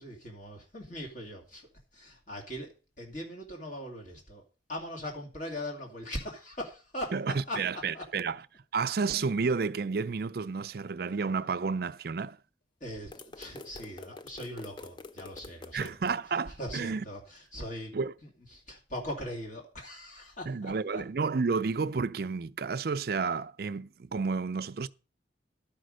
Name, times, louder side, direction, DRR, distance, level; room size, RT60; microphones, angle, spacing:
voice 1, 0.0-4.4 4.7-7.1 7.5-7.6 7.9-8.1 12.8-16.1 16.5-17.9 18.2-21.0, equal, 45° left, 2.4 m, -40 dB
voice 2, 7.1-8.4 8.7-12.4 15.7-17.0 17.9-18.1 20.5-24.9, right 4 dB, 55° right, 0.5 m, -31 dB
sound 1, 13.1-16.1, left 3 dB, 25° left, 0.4 m, -47 dB
12.0 x 5.3 x 6.3 m
head